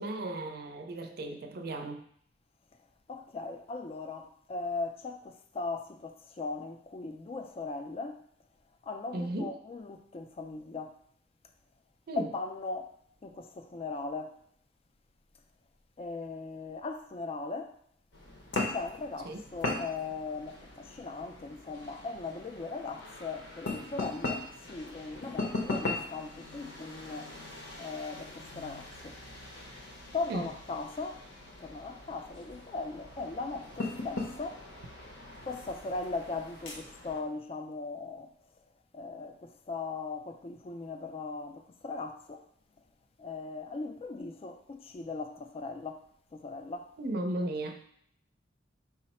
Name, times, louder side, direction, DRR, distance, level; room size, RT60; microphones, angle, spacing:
voice 1, 0.0-2.0 9.1-9.6 12.1-12.3 19.2-19.4 30.3-30.5 47.0-47.8, right 1 dB, 55° right, 0.5 m, -35 dB
voice 2, 3.1-8.2 8.8-10.9 12.2-12.9 13.2-14.4 16.0-17.7 18.7-27.3 27.8-29.1 30.1-31.2 31.6-34.6 35.4-38.3 38.9-42.5 43.2-46.0 46.3-46.9, left 3 dB, 30° left, 0.3 m, -38 dB
sound 1, 18.1-37.2, left 2 dB, 65° left, 0.7 m, -40 dB
4.7 x 2.1 x 4.1 m
head